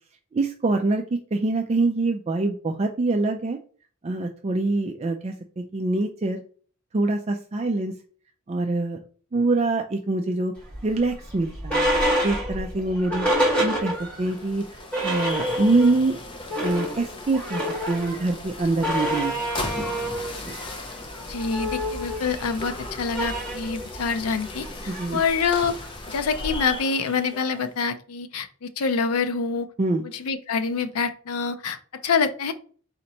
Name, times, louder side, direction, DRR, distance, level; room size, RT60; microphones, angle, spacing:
voice 1, 0.3-3.6 4.0-6.4 6.9-7.9 8.5-9.0 9.3-10.5 10.8-11.9 12.2-13.3 13.6-16.2 16.6-19.8 20.4-20.5 24.9-25.2 29.8-30.1, right 2 dB, 30° right, 4 dB, 0.3 m, -25 dB
sound 1, 10.7-14.3 14.6-14.7 14.9-16.0 16.3-26.8, equal, 5° left, 1.3 m, -28 dB
sound 2, 13.7-27.8, left 2 dB, 25° left, 0.5 m, -38 dB
voice 2, 21.3-24.7 25.1-25.8 26.1-29.7 30.1-32.5, left 5 dB, 90° left, 9 dB, 0.5 m, -26 dB
4.2 x 2.8 x 4.0 m, 0.44 s
head